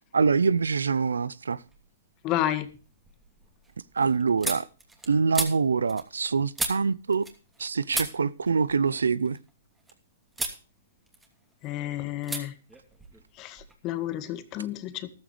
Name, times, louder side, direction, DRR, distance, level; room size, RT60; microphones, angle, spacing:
voice 1, 0.1-1.6 3.9-4.7 5.1-7.3 7.6-9.4, right 5 dB, 85° right, 0.7 m, -25 dB
sound 1, 1.7-2.2 2.6-7.6 7.9-9.9 10.3-10.6 11.0-11.7 12.2-12.4 12.7-13.7, right 2 dB, 10° right, 2.7 m, -36 dB
voice 2, 2.2-2.7 11.6-12.5 13.4-15.1, left 13 dB, 35° left, 1.8 m, -31 dB
14.0 x 13.0 x 3.2 m
hypercardioid pair, 125°, 0 cm